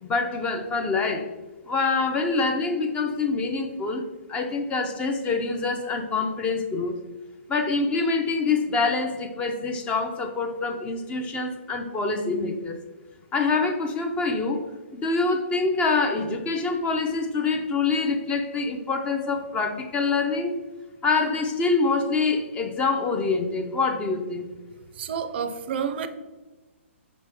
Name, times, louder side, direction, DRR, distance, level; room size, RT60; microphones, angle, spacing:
voice 1, 0.0-1.3 1.7-4.0 4.3-7.0 7.5-12.8 13.3-14.6 14.9-20.5 21.0-24.5, left 4 dB, 15° left, 5 dB, 0.4 m, -25 dB
voice 2, 25.0-26.1, right 7 dB, 50° right, 10 dB, 0.4 m, -29 dB
5.0 x 3.0 x 3.4 m, 1.2 s
hypercardioid pair, 135°, 7 cm